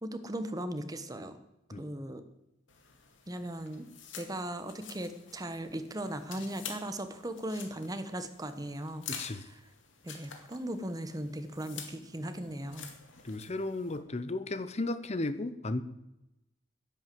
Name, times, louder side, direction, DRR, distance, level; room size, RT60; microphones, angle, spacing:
voice 1, 0.0-1.4 1.8-2.2 3.3-3.9 4.2-9.1 9.3-9.6 10.0-12.9, right 1 dB, 20° right, 9 dB, 1.1 m, -38 dB
sound 1, 2.7-14.0, left 7 dB, 80° left, 2.3 m, -48 dB
voice 2, 9.1-9.4 13.2-15.8, left 2 dB, 35° left, 13 dB, 0.9 m, -34 dB
10.5 x 10.5 x 7.8 m, 0.92 s
head